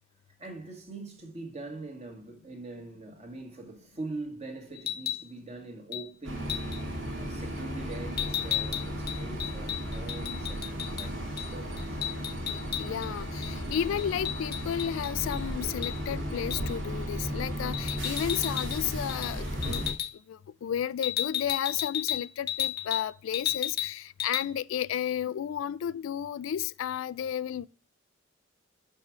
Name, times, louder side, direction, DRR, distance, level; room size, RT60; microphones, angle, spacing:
voice 1, 0.4-12.3, right 2 dB, 30° right, 1.7 m, -43 dB
sound 1, 4.7-5.2 5.9-6.1 6.5-6.8 8.2-11.1 11.4-11.5 11.8-13.1 13.4-15.4 15.8-16.0 16.5-16.7 17.7-18.8 19.1-19.3 19.6-20.1 21.0-23.1 23.3-23.9 24.2-24.4, left 12 dB, 50° left, 1.0 m, -33 dB
sound 2, 6.2-19.9, equal, 75° right, 2.2 m, -35 dB
voice 2, 12.5-20.0 20.3-27.7, left 9 dB, 80° left, 0.3 m, -33 dB
6.3 x 5.5 x 4.6 m
head